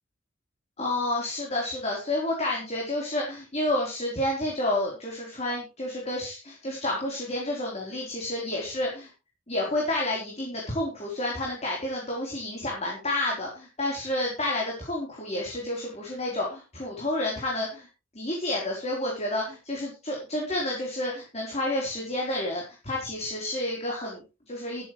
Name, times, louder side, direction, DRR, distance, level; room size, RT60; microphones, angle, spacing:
voice 1, 0.8-9.1 9.5-17.9 18.1-24.9, left 1 dB, 35° left, -2 dB, 4.2 m, -30 dB
14.5 x 12.0 x 3.3 m, 0.30 s
head